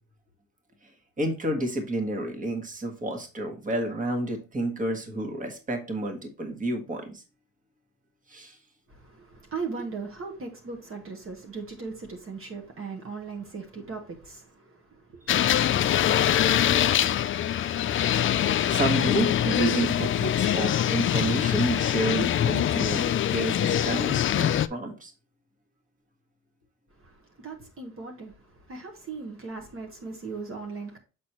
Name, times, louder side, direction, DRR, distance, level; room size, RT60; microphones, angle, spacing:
voice 1, 1.2-7.2 8.3-8.6 18.7-25.1, right 1 dB, 25° right, 1.5 m, -30 dB
voice 2, 8.9-15.3 27.0-31.0, right 4 dB, 45° right, 1.4 m, -38 dB
sound 1, 15.3-24.7, left 10 dB, 45° left, 0.4 m, -24 dB
7.4 x 4.2 x 3.0 m
cardioid pair, 90°, 30 cm